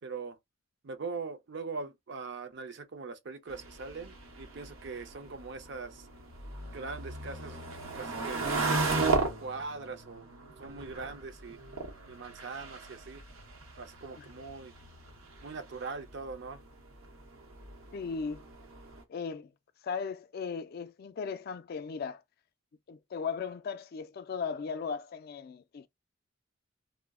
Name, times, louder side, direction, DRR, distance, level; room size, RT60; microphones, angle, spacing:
voice 1, 0.0-0.4 0.8-6.1 6.7-7.6 7.9-8.4 9.1-10.3 10.6-11.6 12.1-13.2 13.8-14.7 15.4-16.6, right 4 dB, 60° right, 0.5 m, -41 dB
sound 1, 3.5-19.0, right 3 dB, 85° right, 0.8 m, -37 dB
voice 2, 17.9-18.5 19.1-19.5 19.8-22.2 22.9-25.9, left 5 dB, 50° left, 0.3 m, -37 dB
2.3 x 2.0 x 3.5 m
head